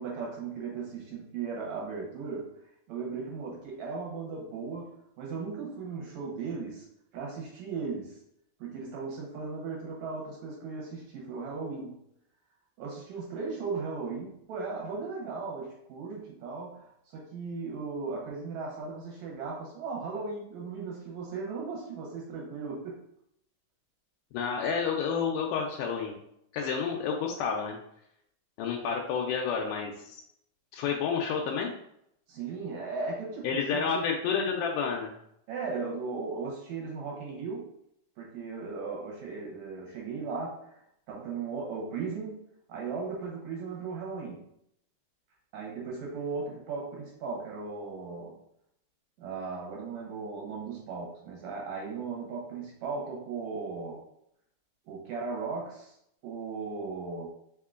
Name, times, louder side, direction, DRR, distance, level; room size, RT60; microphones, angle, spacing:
voice 1, 0.0-2.6 2.9-6.9 7.1-8.2 8.6-11.9 12.8-23.0 32.3-34.1 35.5-37.7 38.2-40.8 41.1-42.4 42.7-44.5 45.5-48.4 49.2-54.0 54.9-56.0 56.2-57.3, right 4 dB, 70° right, -2 dB, 2.0 m, -37 dB
voice 2, 24.3-26.2 26.5-27.8 28.6-30.2 30.7-31.7 33.4-35.1, left 6 dB, 85° left, 0 dB, 2.1 m, -30 dB
4.8 x 3.7 x 2.4 m, 0.74 s
omnidirectional pair, 3.7 m